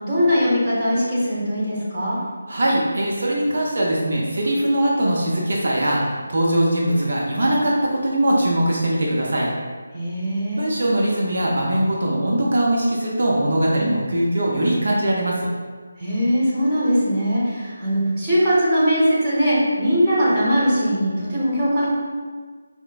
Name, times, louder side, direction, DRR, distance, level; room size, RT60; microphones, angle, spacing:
voice 1, 0.0-2.2 9.9-10.6 13.7-13.9 16.0-21.9, equal, 20° right, -11 dB, 0.9 m, -20 dB
voice 2, 2.5-9.5 10.6-15.5, right 1 dB, 65° right, -3 dB, 0.5 m, -21 dB
4.3 x 2.0 x 2.3 m, 1.5 s
figure-of-eight pair, 165°, 0 cm